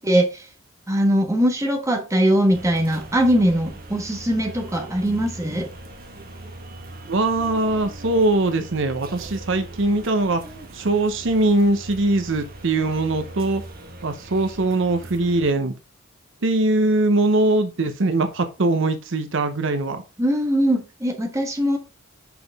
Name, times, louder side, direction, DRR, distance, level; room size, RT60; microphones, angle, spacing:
voice 1, 0.0-0.5 0.9-5.7 20.2-21.8, equal, 15° right, 2 dB, 1.3 m, -21 dB
sound 1, 2.5-15.5, right 2 dB, 45° right, 1.2 m, -40 dB
voice 2, 7.1-10.4 10.7-13.6 14.0-15.7 16.4-20.0, right 2 dB, 65° right, 8 dB, 0.8 m, -21 dB
6.0 x 5.8 x 3.5 m, 0.30 s
head